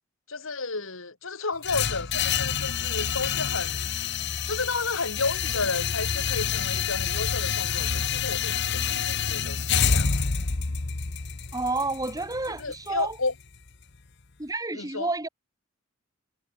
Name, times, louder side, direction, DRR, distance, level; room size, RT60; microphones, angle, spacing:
voice 1, 0.3-3.8 4.5-10.1 12.6-13.3 14.7-15.1, left 3 dB, 80° left, 2.8 m, -32 dB
sound 1, 1.6-13.7, left 7 dB, 60° left, 1.1 m, -28 dB
voice 2, 11.5-13.2 14.4-15.3, right 2 dB, 20° right, 2.1 m, -30 dB
head